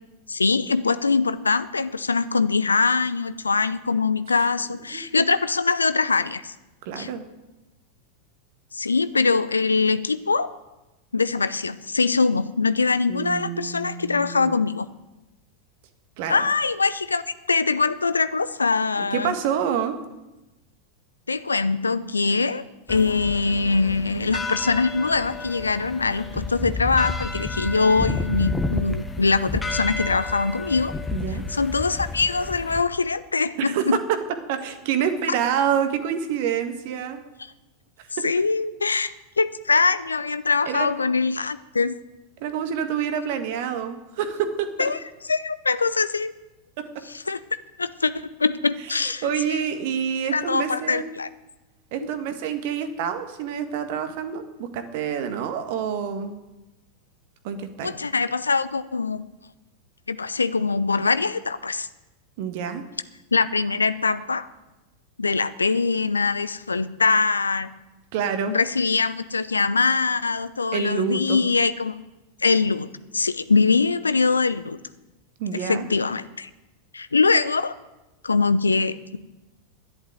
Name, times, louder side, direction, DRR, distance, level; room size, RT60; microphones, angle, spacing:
voice 1, 0.3-6.5 7.0-7.1 8.7-10.5 11.1-14.9 16.3-17.2 17.5-19.4 21.3-22.6 22.9-30.9 31.5-34.0 38.2-42.0 44.8-45.0 45.3-46.3 47.1-47.4 47.8-49.6 50.3-51.3 57.8-59.2 60.1-61.9 63.3-64.5 65.2-67.7 68.5-71.9 72.4-72.9 73.1-74.8 75.5-76.5 76.9-77.7 78.2-79.2, left 4 dB, 75° left, 15 dB, 0.7 m, -23 dB
voice 2, 4.9-5.2 6.8-7.2 13.1-14.6 16.2-16.4 19.0-19.9 31.1-31.4 33.7-34.2 34.5-37.2 40.6-40.9 42.4-44.9 46.8-46.9 49.2-51.1 51.9-56.3 57.4-57.9 62.4-62.8 68.1-68.5 70.7-71.4 75.4-75.8, right 8 dB, 50° right, 8 dB, 1.7 m, -27 dB
sound 1, 22.9-32.8, left 3 dB, 10° left, 1.4 m, -31 dB
11.5 x 11.0 x 9.2 m, 1.1 s
figure-of-eight pair, 90°, 0 cm